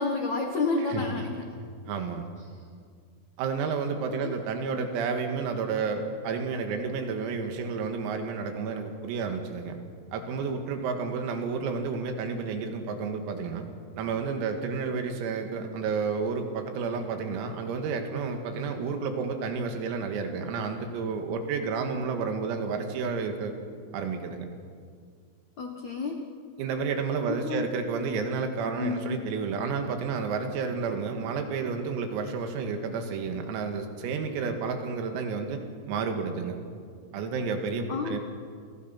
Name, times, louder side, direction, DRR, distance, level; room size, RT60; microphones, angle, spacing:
voice 1, 0.0-1.4 4.2-4.3 25.6-26.2 27.3-27.7 28.8-29.2 37.9-38.2, left 4 dB, 85° left, 3 dB, 1.6 m, -30 dB
voice 2, 0.8-1.3 1.8-2.2 3.4-9.8 10.1-13.7 14.0-23.5 23.9-24.5 26.6-35.6 35.9-36.6 37.1-38.2, right 5 dB, 85° right, 5 dB, 4.7 m, -31 dB
29.5 x 24.0 x 5.9 m, 2.1 s
omnidirectional pair, 6.0 m